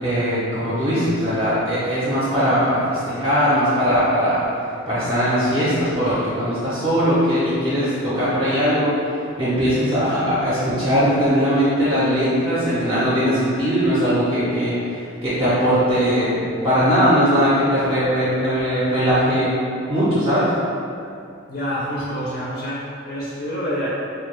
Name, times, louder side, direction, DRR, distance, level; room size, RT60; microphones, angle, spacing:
voice 1, 0.0-4.5 4.9-8.9 9.4-19.6 19.9-20.5, equal, 25° right, -11 dB, 0.5 m, -20 dB
voice 2, 21.5-23.9, equal, 45° left, -8 dB, 0.4 m, -27 dB
2.2 x 2.1 x 3.0 m, 2.5 s
head